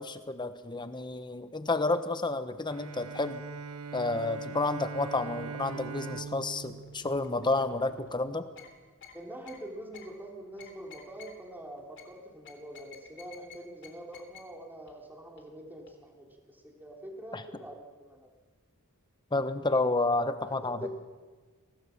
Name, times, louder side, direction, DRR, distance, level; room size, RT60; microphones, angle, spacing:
voice 1, 0.0-3.4 3.9-8.5 17.3-17.4 19.3-20.9, left 2 dB, 20° left, 10 dB, 1.1 m, -30 dB
Bowed string instrument, 2.7-8.1, right 5 dB, 75° right, 1.1 m, -42 dB
sound 1, 5.1-5.7 6.1-8.1 8.6-8.7 9.0-9.1 9.4-9.6 9.9-10.1 10.6-11.3 12.0-12.1 12.4-13.5 13.8-13.9 14.1-14.4 14.9-15.0 15.4-15.5 15.9-16.0, left 6 dB, 60° left, 3.5 m, -51 dB
voice 2, 9.1-18.3 20.5-20.9, right 1 dB, 10° right, 1 dB, 3.5 m, -45 dB
24.0 x 18.0 x 7.2 m, 1.4 s
head